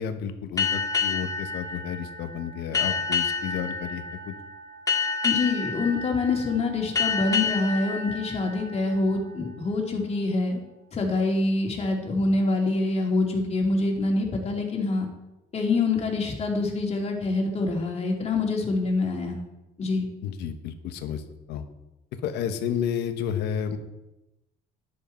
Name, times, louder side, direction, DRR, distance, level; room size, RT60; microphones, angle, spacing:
voice 1, 0.0-4.3 20.2-21.2 21.5-21.6 22.2-23.8, left 8 dB, 85° left, 8 dB, 1.3 m, -31 dB
sound 1, 0.6-9.7, left 5 dB, 20° left, 2.7 m, -29 dB
voice 2, 5.2-10.6 10.9-15.1 15.5-19.4 19.8-20.1, left 3 dB, 40° left, 1 dB, 2.7 m, -25 dB
11.0 x 10.0 x 4.4 m, 0.95 s
cardioid pair, 110°, 17 cm